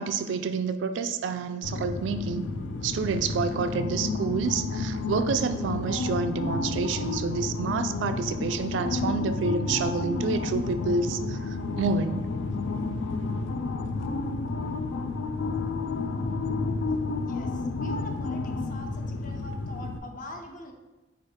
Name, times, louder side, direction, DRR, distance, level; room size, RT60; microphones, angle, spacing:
voice 1, 0.0-2.5 2.8-12.2, right 4 dB, 75° right, 9 dB, 0.3 m, -28 dB
sound 1, 1.6-20.0, left 3 dB, 85° left, 0.4 m, -31 dB
voice 2, 17.2-20.7, left 1 dB, 45° left, 3 dB, 0.6 m, -43 dB
4.7 x 2.4 x 4.6 m, 1.1 s
head